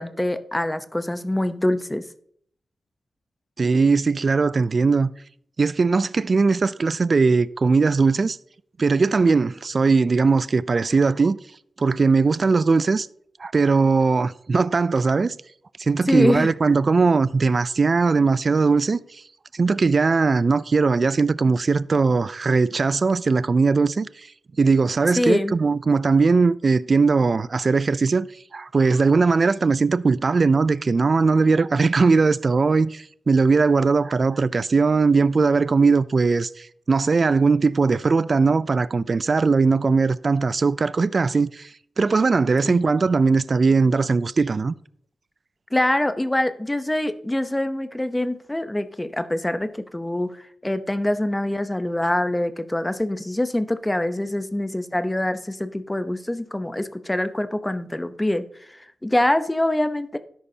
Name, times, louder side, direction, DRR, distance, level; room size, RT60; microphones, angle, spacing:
voice 1, 0.0-2.0 16.1-16.5 25.1-25.6 42.7-42.9 45.7-58.5 58.7-60.2, left 1 dB, 15° left, 0.8 m, -24 dB
voice 2, 3.6-5.1 5.6-8.4 8.8-11.4 11.8-13.1 13.4-15.4 15.8-19.2 19.5-24.3 24.6-28.3 28.5-41.7 42.0-44.7, right 4 dB, 50° right, 0.4 m, -19 dB
12.5 x 10.5 x 2.8 m
cardioid pair, 60°, 0 cm